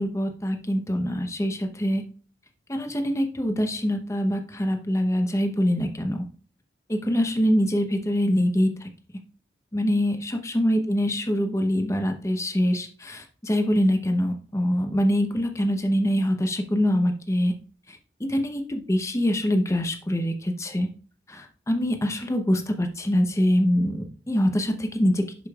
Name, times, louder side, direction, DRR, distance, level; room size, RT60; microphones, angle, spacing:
voice 1, 0.0-2.0 2.7-6.2 6.9-8.9 9.7-17.5 18.3-20.9 21.3-24.0 24.3-25.2, equal, 15° left, 5 dB, 0.8 m, -24 dB
11.0 x 5.1 x 2.4 m, 0.39 s
head